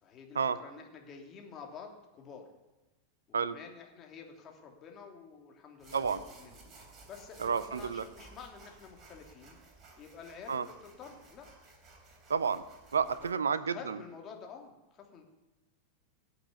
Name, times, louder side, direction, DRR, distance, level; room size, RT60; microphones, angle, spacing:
voice 1, 0.0-2.5 3.4-6.6 7.1-9.6 10.0-11.5 12.9-15.2, left 6 dB, 30° left, 1 dB, 3.0 m, -49 dB
sound 1, 5.8-13.3, right 3 dB, 25° right, 3.3 m, -56 dB
voice 2, 7.4-8.0 10.5-10.7 12.3-12.6 12.9-14.0, right 6 dB, 70° right, 16 dB, 0.7 m, -30 dB
19.0 x 7.8 x 8.4 m, 1.1 s
figure-of-eight pair, 90°, 0 cm